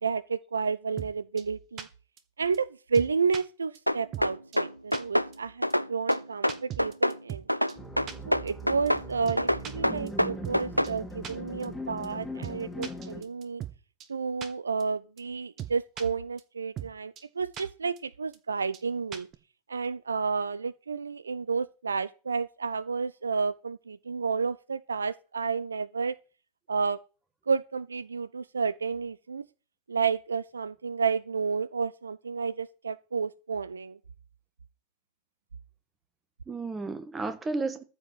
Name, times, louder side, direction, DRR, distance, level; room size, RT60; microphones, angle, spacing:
voice 1, 0.0-1.9 2.4-5.6 5.9-7.4 8.3-13.6 14.1-19.3 19.7-26.2 26.7-27.0 27.5-29.5 29.9-34.0, right 5 dB, 75° right, 0.5 m, -31 dB
sound 1, 1.0-1.1 1.4-1.5 1.8-1.9 2.2-2.3 2.5-2.6 2.9-3.4 3.7-3.8 4.1-4.3 4.5-4.6 4.9-5.0 5.3-5.4 5.7-5.8 6.1-6.2 6.5-7.4 7.7-7.8 8.1-8.2 8.5-8.6 8.9-9.0 9.3-9.7 10.1-10.2 10.4-10.6 10.8-10.9 11.2-11.3 11.6-11.7 12.0-12.1 12.4-12.6 12.8-13.7 14.0-14.1 14.4-14.5 14.8-14.9 15.2-15.3 15.6-16.0 16.4-16.5 16.8-16.9 17.2-17.3 17.5-17.6 18.0-18.1 18.3-18.4 18.7-18.8 19.1-19.3, right 10 dB, 30° right, 1.7 m, -38 dB
sound 2, 3.9-5.3 5.6-7.2 7.5-9.1 9.4-10.9, equal, 90° left, 0.5 m, -26 dB
sound 3, 7.8-13.2, left 1 dB, 5° left, 2.6 m, -40 dB
voice 2, 9.8-10.5 36.5-37.8, right 3 dB, 15° right, 1.7 m, -34 dB
14.0 x 5.3 x 7.3 m
figure-of-eight pair, 90°, 0 cm